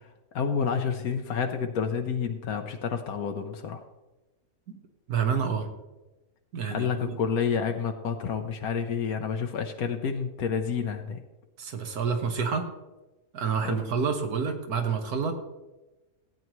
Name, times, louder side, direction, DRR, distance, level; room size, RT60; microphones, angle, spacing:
voice 1, 0.3-3.8 6.7-11.2 13.6-13.9, left 6 dB, 75° left, 5 dB, 1.2 m, -29 dB
voice 2, 5.1-5.7 6.5-6.9 11.6-12.7 13.3-15.3, right 6 dB, 85° right, 5 dB, 1.7 m, -28 dB
16.0 x 9.2 x 3.1 m, 1.1 s
omnidirectional pair, 1.6 m